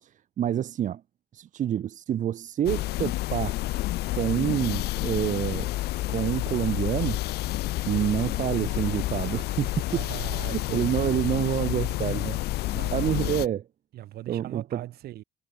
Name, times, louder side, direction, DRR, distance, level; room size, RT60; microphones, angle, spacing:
voice 1, 0.0-1.0 1.3-3.6 4.1-5.7 6.1-7.2 7.8-10.0 10.5-12.4 12.9-13.6 14.3-14.8, right 10 dB, 50° right, 0.9 m, -27 dB
sound 1, 2.7-13.5, left 17 dB, 80° left, 1.6 m, -29 dB
voice 2, 9.9-11.2 12.7-13.3 13.9-15.2, right 14 dB, 75° right, 4.2 m, -40 dB
cardioid pair, 100°, 16 cm